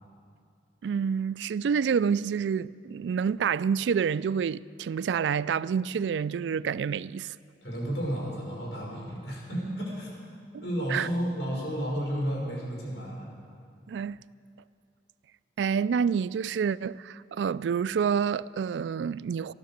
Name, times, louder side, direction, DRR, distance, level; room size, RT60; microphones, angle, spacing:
voice 1, 0.8-7.3 10.9-11.1 13.9-14.2 15.6-19.5, right 6 dB, 85° right, 0.3 m, -28 dB
voice 2, 7.6-10.1 10.6-13.3, equal, 90° left, 5.3 m, -32 dB
13.5 x 13.0 x 7.3 m
head